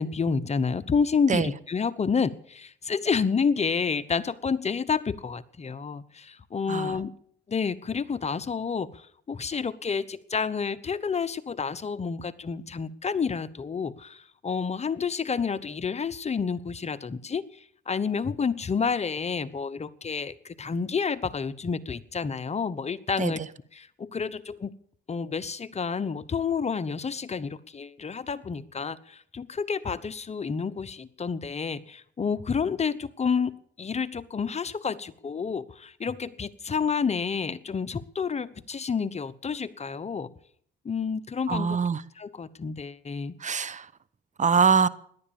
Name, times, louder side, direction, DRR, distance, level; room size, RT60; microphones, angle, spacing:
voice 1, 0.0-7.1 7.5-8.9 9.3-17.4 17.9-23.4 23.7-24.7 25.1-40.3 40.8-41.8 42.2-43.3, left 5 dB, 35° left, 1.0 m, -29 dB
voice 2, 41.5-42.0 43.4-43.8 44.4-44.9, right 5 dB, 40° right, 0.9 m, -23 dB
17.5 x 11.5 x 7.1 m
cardioid pair, 90°, 20 cm